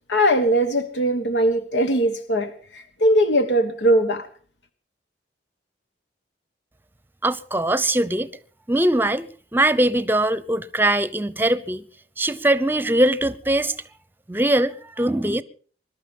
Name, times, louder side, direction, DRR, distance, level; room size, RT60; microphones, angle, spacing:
voice 1, 0.1-4.3, equal, 85° left, 1.4 m, -20 dB
voice 2, 7.2-8.3 8.7-11.8 12.2-13.8 14.3-15.4, right 1 dB, 10° right, 0.7 m, -21 dB
21.0 x 12.0 x 5.4 m
head